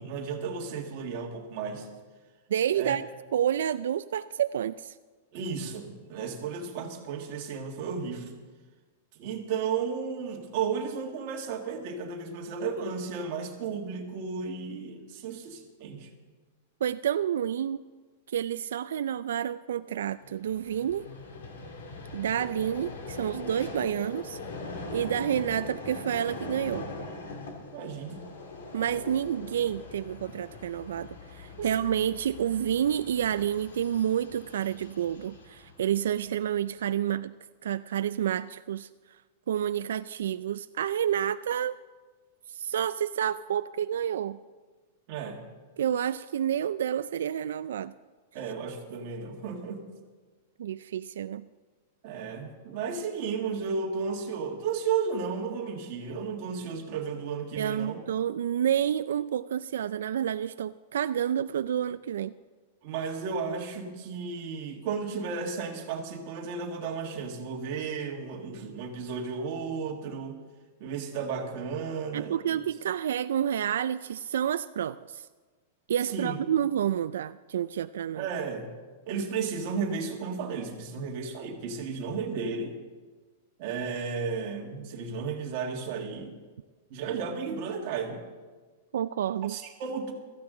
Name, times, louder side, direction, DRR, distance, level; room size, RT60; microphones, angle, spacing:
voice 1, 0.0-1.9 2.7-3.0 5.3-8.3 9.2-16.1 27.7-28.3 31.6-31.7 45.1-45.4 48.3-49.8 52.0-58.0 62.8-70.4 70.8-72.6 76.1-76.4 78.2-78.7 79.1-82.8 83.6-86.3 86.9-88.2 89.5-90.1, right 5 dB, 35° right, 1 dB, 1.7 m, -33 dB
voice 2, 2.5-3.0 3.3-5.0 16.8-17.8 18.3-21.1 22.1-24.4 24.9-26.9 28.7-37.3 37.6-38.9 39.5-41.8 42.5-44.4 45.8-47.9 50.6-51.4 57.6-62.3 72.1-75.3 75.9-78.3 88.9-89.6, right 9 dB, 85° right, 13 dB, 0.3 m, -29 dB
Vehicle, 20.2-36.6, left 3 dB, 85° left, 2.4 m, -42 dB
16.0 x 14.0 x 3.8 m, 1.4 s
supercardioid pair, 180°, 0 cm